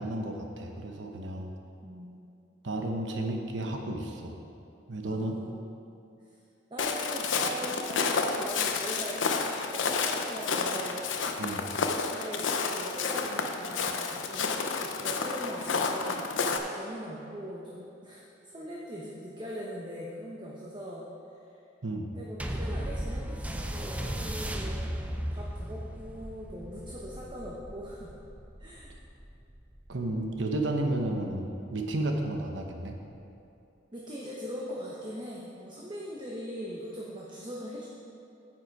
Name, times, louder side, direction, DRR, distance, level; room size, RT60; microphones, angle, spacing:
voice 1, 0.0-1.5 2.6-4.4 4.9-5.4 11.4-11.7 21.8-22.1 29.9-32.9, right 1 dB, 70° right, 3 dB, 1.0 m, -32 dB
voice 2, 1.8-2.3 5.0-5.6 6.7-11.0 12.1-14.4 14.8-16.2 16.7-21.0 22.1-24.9 25.3-28.1 28.6-29.0 33.9-37.9, equal, 25° right, -4 dB, 1.0 m, -41 dB
Walk footsteps, 6.8-16.6, left 4 dB, 85° left, 0.7 m, -30 dB
sound 1, 22.4-31.2 31.9-32.0, equal, 5° right, 0.5 m, -36 dB
9.4 x 7.7 x 4.8 m, 2.7 s
head